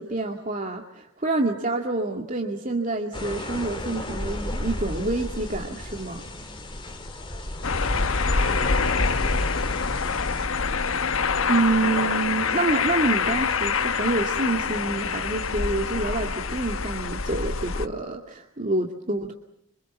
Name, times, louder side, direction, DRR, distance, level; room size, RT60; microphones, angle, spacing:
voice 1, 0.0-6.2 11.5-19.3, right 2 dB, 35° right, 2.2 m, -27 dB
sound 1, 3.1-10.5, left 1 dB, 25° left, 3.4 m, -34 dB
sound 2, 7.6-17.9, left 5 dB, 75° left, 1.2 m, -25 dB
voice 2, 7.8-9.6, left 1 dB, 70° right, 7.8 m, -41 dB
27.5 x 26.0 x 7.2 m
head